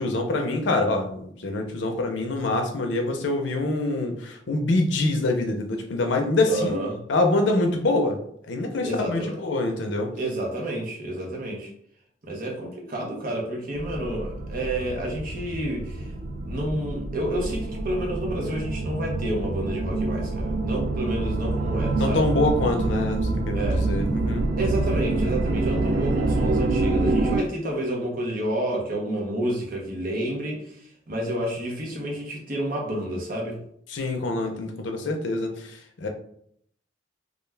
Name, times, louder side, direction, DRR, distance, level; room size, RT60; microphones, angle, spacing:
voice 1, 0.0-6.8 7.1-8.2 8.5-10.1 22.0-24.4 33.9-36.1, left 2 dB, 80° left, 4 dB, 0.5 m, -25 dB
voice 2, 6.5-7.0 8.8-9.4 10.2-11.7 12.2-16.1 16.5-22.2 23.5-23.9 24.6-30.8 31.1-33.6, right 1 dB, 50° right, -1 dB, 0.7 m, -29 dB
sound 1, 13.7-27.4, right 2 dB, 65° right, 0.4 m, -26 dB
2.4 x 2.2 x 3.2 m, 0.68 s
head